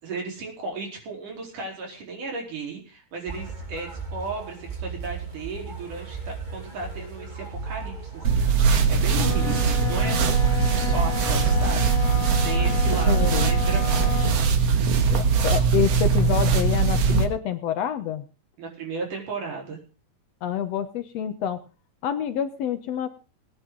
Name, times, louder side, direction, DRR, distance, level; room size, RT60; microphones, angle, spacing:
voice 1, 0.0-14.2 18.6-19.8, right 4 dB, 85° right, 0 dB, 5.7 m, -35 dB
sound 1, 3.3-15.7, right 4 dB, 15° right, 2.3 m, -37 dB
sound 2, 8.2-17.3, right 5 dB, 60° right, 2.3 m, -21 dB
Wind instrument woodwind instrument, 9.0-14.4, left 8 dB, 10° left, 3.2 m, -33 dB
voice 2, 13.1-13.5 15.1-18.2 20.4-21.6 22.0-23.1, left 9 dB, 65° left, 10 dB, 1.9 m, -27 dB
20.5 x 9.9 x 3.9 m, 0.34 s
omnidirectional pair, 3.5 m